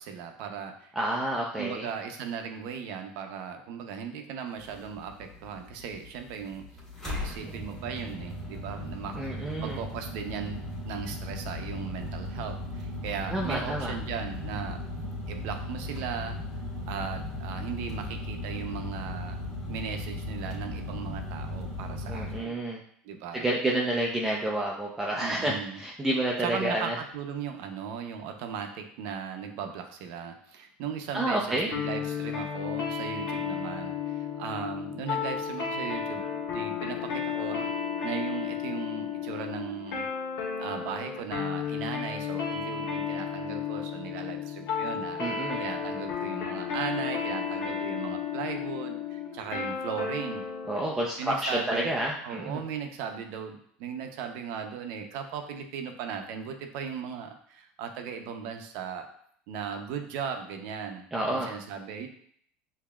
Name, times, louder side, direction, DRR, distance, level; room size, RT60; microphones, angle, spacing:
voice 1, 0.0-0.9 1.5-6.6 7.0-14.8 15.3-16.4 16.9-19.4 19.7-22.6 23.0-23.5 25.2-25.8 26.4-37.7 38.0-40.1 40.6-50.4 51.2-51.9 52.2-59.1 59.5-62.1, right 7 dB, 70° right, 5 dB, 0.7 m, -37 dB
voice 2, 1.0-1.9 9.2-9.8 13.3-13.9 22.1-22.8 23.3-27.0 31.1-31.7 45.2-45.6 50.7-52.6 61.1-61.5, right 1 dB, 10° right, -3 dB, 0.5 m, -29 dB
sound 1, 4.6-22.4, left 1 dB, 15° left, 1.8 m, -37 dB
sound 2, 31.7-50.8, left 7 dB, 75° left, 1.4 m, -33 dB
6.9 x 2.7 x 2.3 m, 0.63 s
cardioid pair, 145°, 4 cm